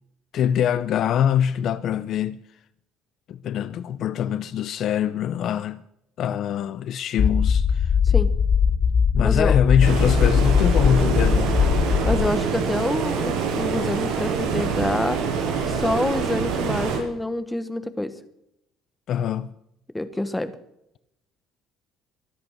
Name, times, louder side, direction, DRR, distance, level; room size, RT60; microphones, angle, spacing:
voice 1, 0.3-2.4 3.3-5.8 6.2-7.9 9.1-11.7 19.1-19.5, left 9 dB, 45° left, 0.5 m, -24 dB
sound 1, 7.2-12.3, left 6 dB, 25° left, 0.8 m, -20 dB
voice 2, 9.2-9.6 12.0-15.2 15.7-18.1 19.9-20.5, left 1 dB, 5° left, 1.1 m, -27 dB
Stream, 9.8-17.0, right 6 dB, 85° right, 7.0 m, -25 dB
24.0 x 8.8 x 6.6 m
cardioid pair, 170°, 0 cm